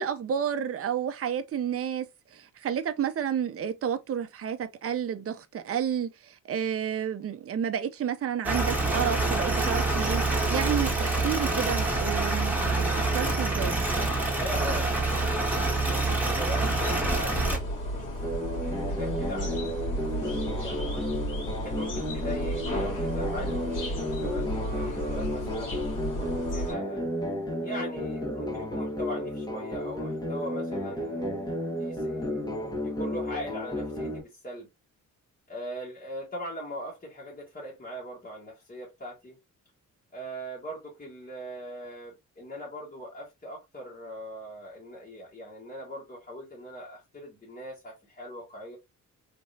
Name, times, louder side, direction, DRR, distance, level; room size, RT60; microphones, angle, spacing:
voice 1, 0.0-12.6 12.9-13.8, right 8 dB, 45° right, 0.6 m, -31 dB
sound 1, 8.4-17.6, right 2 dB, 5° right, 1.5 m, -26 dB
voice 2, 14.2-18.2 18.9-21.1 21.6-27.0 27.6-32.4 32.8-34.7 35.5-39.4 40.1-48.8, equal, 30° left, 1.6 m, -40 dB
sound 2, 16.7-26.7, equal, 65° left, 1.9 m, -33 dB
sound 3, 18.2-34.2, equal, 10° left, 1.3 m, -32 dB
3.4 x 3.0 x 2.7 m
cardioid pair, 95°, 33 cm